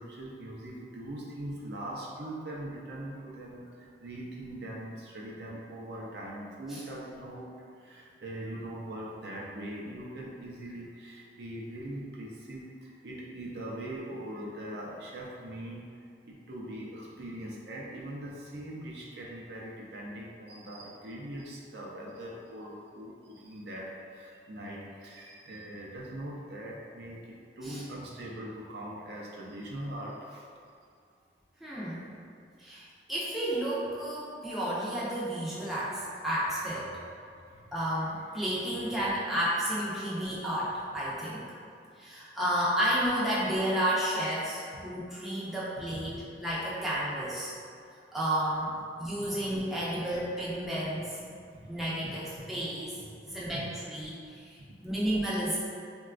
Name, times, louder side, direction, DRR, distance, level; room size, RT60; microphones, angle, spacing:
voice 1, 0.0-7.5 7.8-15.8 16.3-30.4 32.6-32.7 37.3-37.7 38.3-38.4 51.6-51.7 52.0-52.4 52.9-53.7 54.9-55.0, right 1 dB, 60° right, -3 dB, 0.4 m, -41 dB
voice 2, 31.6-32.1 32.6-36.9 37.7-41.4 42.0-47.5 48.1-51.2 51.7-52.9 53.3-55.6, right 1 dB, ahead, -9 dB, 0.4 m, -31 dB
3.8 x 2.2 x 2.4 m, 2.3 s
head